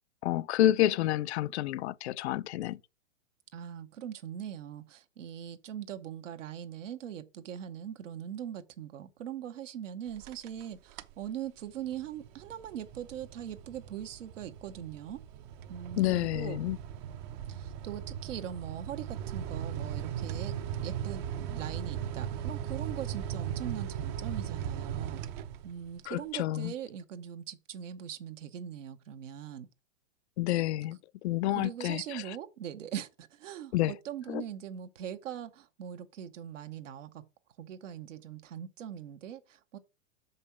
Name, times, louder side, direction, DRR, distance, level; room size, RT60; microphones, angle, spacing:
voice 1, 0.2-2.8 16.0-16.8 26.1-26.7 30.4-32.2 33.7-33.9 34.3-34.4, left 14 dB, 60° left, 0.5 m, -29 dB
voice 2, 3.5-15.2 15.7-16.6 17.5-20.5 20.8-25.2 25.6-29.7 31.5-37.2 37.6-39.8, right 9 dB, 70° right, 1.1 m, -41 dB
sound 1, 10.1-10.6 10.9-11.3 11.7-26.0, right 9 dB, 35° right, 0.7 m, -38 dB
6.2 x 5.5 x 5.6 m
hypercardioid pair, 120°, 38 cm